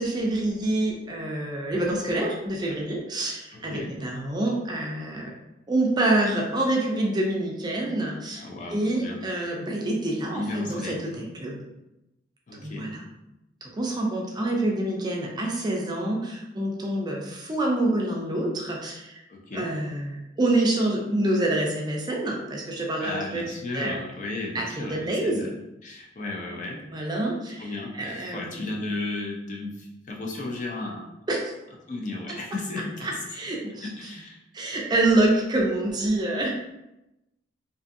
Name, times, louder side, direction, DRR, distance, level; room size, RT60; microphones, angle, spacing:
voice 1, 0.0-5.3 5.7-8.4 8.7-11.6 12.5-13.0 13.6-19.2 19.5-23.5 23.7-24.0 24.5-25.5 26.9-28.7 31.3-31.5 32.3-32.4 33.0-33.9 34.5-36.6, right 1 dB, 20° right, -1 dB, 0.4 m, -27 dB
voice 2, 3.5-3.9 8.4-9.2 10.3-11.1 12.5-13.0 19.3-19.7 23.0-25.5 25.8-26.8 27.6-31.1 31.9-33.2 33.8-34.4, left 2 dB, 40° left, -1 dB, 0.5 m, -34 dB
2.6 x 2.5 x 2.5 m, 0.91 s
head